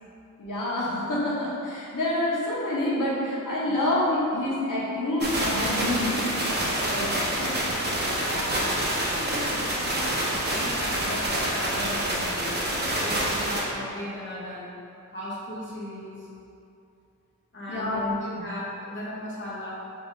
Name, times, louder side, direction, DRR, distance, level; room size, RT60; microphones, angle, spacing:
voice 1, 0.4-6.2 6.9-7.6 17.7-18.4, left 1 dB, 75° left, -6 dB, 0.9 m, -27 dB
sound 1, 5.2-13.6, right 1 dB, 30° right, 0.6 m, -27 dB
voice 2, 8.1-14.8 15.1-16.3 17.5-19.7, left 1 dB, 35° left, -7 dB, 0.9 m, -37 dB
5.4 x 2.5 x 2.6 m, 2.7 s
wide cardioid pair, 145°, 32 cm